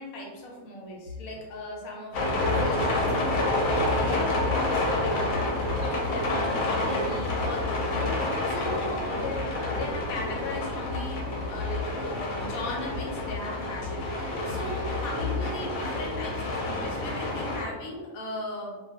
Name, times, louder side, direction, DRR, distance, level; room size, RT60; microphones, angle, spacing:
voice 1, 0.0-5.5 5.8-8.2 8.4-11.2 11.5-18.8, left 2 dB, 90° left, -1 dB, 1.1 m, -37 dB
sound 1, 2.1-17.6, left 2 dB, 65° left, 0.9 m, -28 dB
2.3 x 2.2 x 2.7 m, 1.3 s
omnidirectional pair, 1.5 m